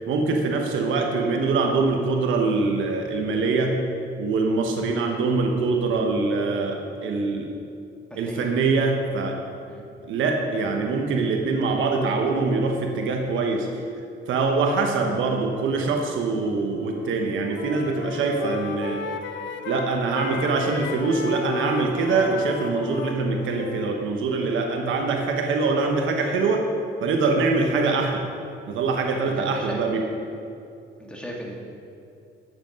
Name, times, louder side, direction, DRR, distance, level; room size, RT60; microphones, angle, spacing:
voice 1, 0.1-3.8 4.2-7.5 8.2-9.4 10.0-13.7 14.3-19.0 19.6-26.7 27.0-28.2 28.6-30.0, right 3 dB, 80° right, 2 dB, 1.2 m, -24 dB
voice 2, 8.1-8.5 9.7-9.8 29.2-29.8 31.0-31.6, equal, 5° left, -2 dB, 2.2 m, -37 dB
Wind instrument woodwind instrument, 16.7-17.1 17.4-23.9, left 5 dB, 70° left, 0.8 m, -34 dB
10.5 x 7.8 x 5.2 m, 2.5 s
cardioid pair, 90°, 20 cm